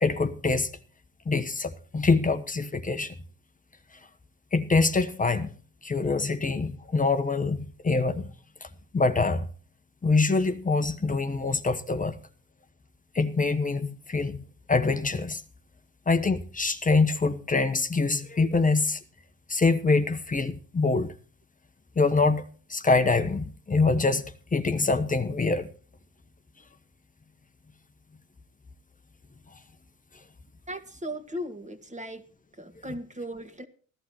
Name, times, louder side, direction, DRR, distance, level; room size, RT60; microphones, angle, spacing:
voice 1, 0.0-0.7 1.3-3.1 4.5-5.5 5.8-8.3 8.9-9.5 10.0-12.2 13.1-14.4 14.7-15.4 16.1-19.0 19.5-21.1 22.0-22.4 22.7-25.7, left 3 dB, 20° left, 1.1 m, -25 dB
voice 2, 30.7-32.2 32.6-33.7, equal, 20° right, 2.0 m, -37 dB
16.0 x 12.0 x 4.5 m
supercardioid pair, 85°, 38 cm